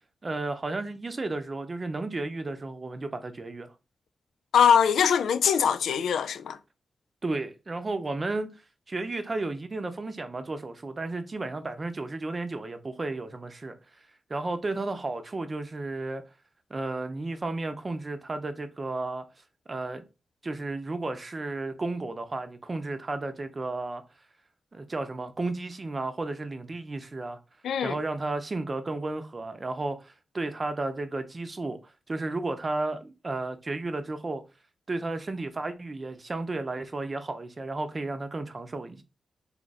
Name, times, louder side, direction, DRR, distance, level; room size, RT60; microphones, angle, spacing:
voice 1, 0.2-3.7 7.2-8.5 8.9-13.8 14.3-16.2 16.7-19.2 19.7-20.0 20.4-24.0 24.7-27.4 27.8-31.8 32.1-34.4 34.9-39.0, right 2 dB, 40° right, 0.6 m, -33 dB
voice 2, 4.5-6.6 27.6-27.9, left 7 dB, 85° left, 0.3 m, -22 dB
2.8 x 2.4 x 4.1 m
cardioid pair, 55°, 0 cm